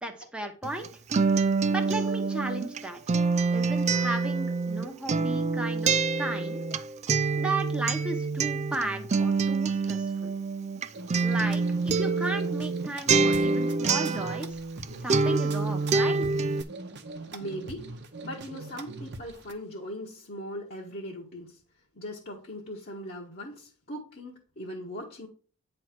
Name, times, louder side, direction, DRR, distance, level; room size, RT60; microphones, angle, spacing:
voice 1, 0.0-0.9 1.7-3.0 3.5-6.6 7.4-10.3 11.2-14.6 15.0-16.4, right 2 dB, 5° right, 1.0 m, -35 dB
Acoustic guitar, 0.6-14.8 15.1-16.6, right 4 dB, 30° right, 0.4 m, -26 dB
sound 1, 10.9-19.5, right 3 dB, 50° right, 0.9 m, -42 dB
voice 2, 17.3-17.9 18.2-21.6 21.9-25.3, equal, 45° left, 1.4 m, -39 dB
9.2 x 3.3 x 5.9 m
head